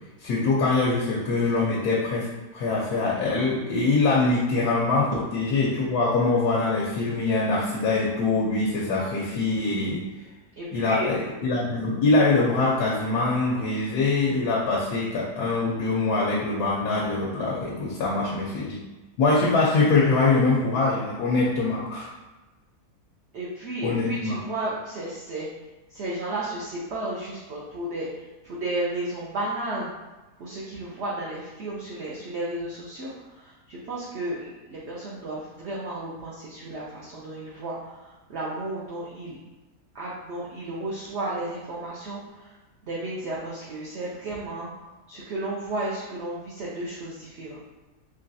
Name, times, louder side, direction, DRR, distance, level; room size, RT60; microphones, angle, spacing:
voice 1, 0.2-10.0 10.7-18.8 19.2-22.1 23.8-24.4, left 3 dB, 90° left, -5 dB, 1.2 m, -23 dB
voice 2, 10.6-11.1 18.0-18.4 23.3-25.5 25.9-29.9 30.4-39.4 39.9-42.5 42.9-44.7 45.1-47.6, right 2 dB, 60° right, -6 dB, 0.8 m, -33 dB
3.9 x 3.2 x 2.6 m, 1.1 s
omnidirectional pair, 1.6 m